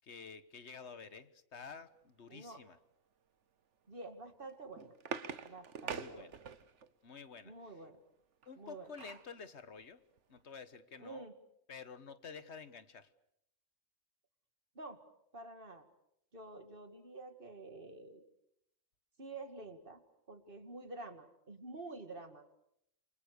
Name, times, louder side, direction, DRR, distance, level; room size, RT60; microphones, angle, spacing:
voice 1, 0.0-2.8 5.8-6.3 7.0-7.5 8.5-10.0 10.3-11.3 11.7-13.1, left 5 dB, 55° left, 12 dB, 1.6 m, -50 dB
voice 2, 2.3-2.6 3.9-4.9 5.4-6.3 7.4-8.0 8.6-8.9 11.0-11.3 14.7-15.0 15.3-15.9 16.3-18.2 19.2-20.0 20.3-22.4, right 2 dB, 40° right, 7 dB, 2.4 m, -49 dB
sound 1, 4.4-6.9 8.4-9.3 9.8-9.9 10.2-10.4, right 6 dB, 65° right, 1.5 m, -44 dB
28.0 x 24.5 x 6.8 m, 0.78 s
omnidirectional pair, 1.4 m